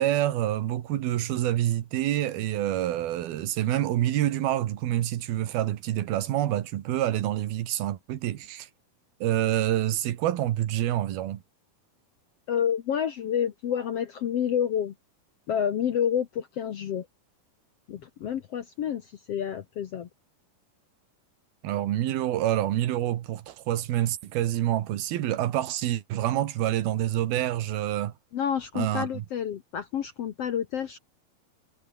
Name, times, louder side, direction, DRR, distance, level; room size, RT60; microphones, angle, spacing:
voice 1, 0.0-8.7 9.2-11.4 21.6-28.1 28.7-29.2, right 13 dB, 90° right, 3.4 m, -27 dB
voice 2, 12.5-14.9 15.5-17.1 17.9-20.1 28.3-31.0, left 9 dB, 65° left, 1.6 m, -29 dB
omnidirectional pair, 4.2 m